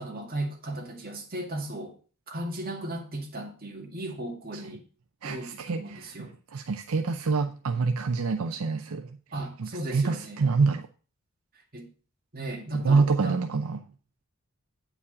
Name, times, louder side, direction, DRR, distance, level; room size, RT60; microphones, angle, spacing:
voice 1, 0.0-1.9 2.3-4.8 5.2-6.3 9.3-10.4 11.7-11.9 12.3-13.4, right 1 dB, 40° right, 2.1 m, -35 dB
voice 2, 5.2-9.1 9.6-10.9 12.8-13.8, right 4 dB, 70° right, 0.6 m, -26 dB
8.5 x 5.0 x 6.3 m
head